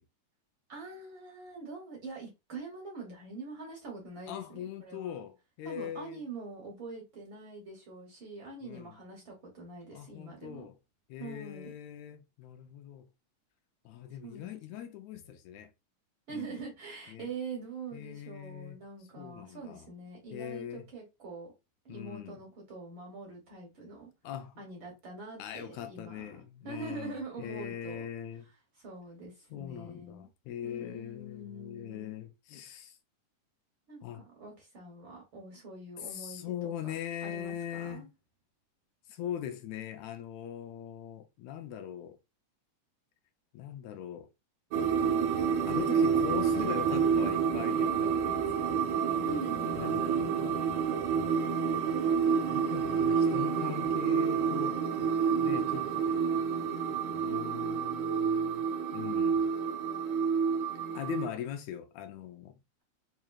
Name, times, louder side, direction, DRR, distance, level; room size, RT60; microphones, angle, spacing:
voice 1, 0.7-5.2 5.6-10.7 11.2-11.7 14.2-14.5 16.3-21.5 21.8-24.1 24.6-28.1 28.8-30.3 30.6-32.2 33.9-36.9 37.2-38.1 49.2-49.8, right 3 dB, 60° right, 1.5 m, -44 dB
voice 2, 4.3-6.2 8.6-9.0 9.9-10.8 11.1-13.1 13.9-15.7 16.3-16.5 17.1-17.3 17.9-18.8 19.2-19.9 20.3-20.8 21.9-22.4 24.2-24.5 25.4-28.5 29.5-33.0 34.0-34.2 36.0-38.1 39.1-42.2 43.5-44.3 45.7-48.9 49.8-50.7 52.5-54.8 55.4-56.2 56.9-58.7 58.9-59.5 60.9-62.6, left 10 dB, 80° left, 1.8 m, -41 dB
sound 1, 44.7-61.3, right 6 dB, 75° right, 1.9 m, -29 dB
4.8 x 3.1 x 2.3 m
omnidirectional pair, 3.4 m